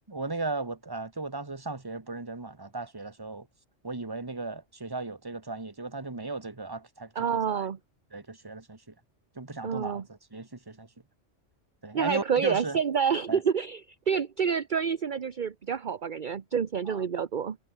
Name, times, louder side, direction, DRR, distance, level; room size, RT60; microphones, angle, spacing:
voice 1, 0.1-3.5 3.8-7.6 8.1-8.9 9.3-10.9 11.8-12.8 13.3-13.4 16.8-17.0, right 3 dB, 20° right, 1.6 m, -36 dB
voice 2, 7.2-7.8 9.6-10.0 11.9-17.6, right 7 dB, 45° right, 1.0 m, -28 dB
omnidirectional pair, 1.3 m